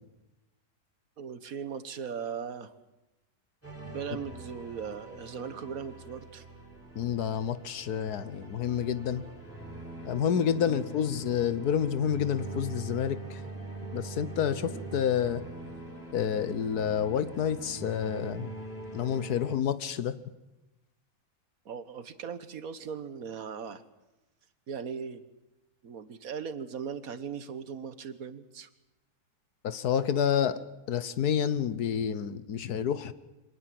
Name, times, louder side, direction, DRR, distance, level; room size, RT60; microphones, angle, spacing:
voice 1, 1.2-2.7 3.9-6.4 10.6-10.8 14.7-14.9 21.6-23.8 24.7-25.2 25.8-28.7, right 6 dB, 65° right, 13 dB, 1.6 m, -39 dB
sound 1, 3.6-19.6, right 2 dB, 10° left, 6.5 m, -43 dB
voice 2, 6.9-9.2 10.0-13.4 13.9-15.4 16.1-18.5 18.9-20.1 29.6-30.6 30.9-33.1, left 8 dB, 75° left, 15 dB, 1.5 m, -29 dB
25.0 x 18.5 x 7.7 m, 1.0 s
omnidirectional pair, 1.7 m